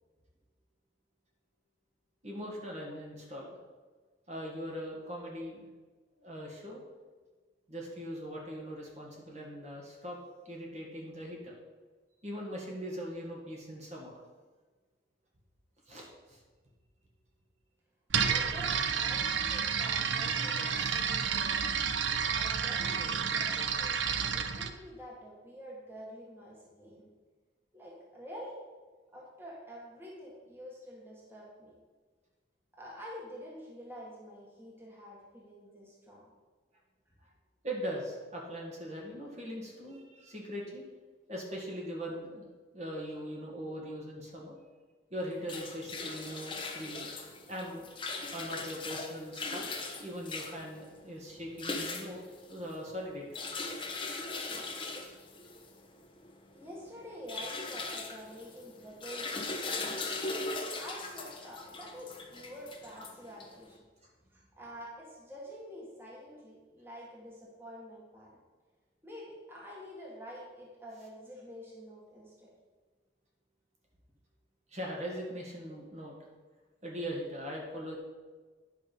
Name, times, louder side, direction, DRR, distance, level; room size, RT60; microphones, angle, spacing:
voice 1, 2.2-3.6 4.3-5.7 6.2-6.8 7.7-10.2 10.5-11.5 12.2-14.1 15.9-16.4 20.8-21.0 37.2-37.3 37.6-40.8 41.3-42.5 42.7-44.6 45.1-47.1 47.4-47.8 48.3-49.7 50.0-53.4 74.7-76.1 76.8-78.0, equal, 35° right, -2 dB, 1.9 m, -40 dB
voice 2, 18.1-21.6 22.2-27.1 27.7-28.6 29.1-31.8 32.8-36.2 56.5-60.4 60.8-63.9 64.3-68.3 69.0-72.5, equal, 10° right, -4 dB, 1.8 m, -48 dB
sound 1, 18.1-24.7, right 7 dB, 80° right, 0.7 m, -30 dB
sound 2, 45.2-63.7, left 3 dB, 25° left, 1.0 m, -40 dB
10.5 x 6.0 x 5.4 m, 1.4 s
head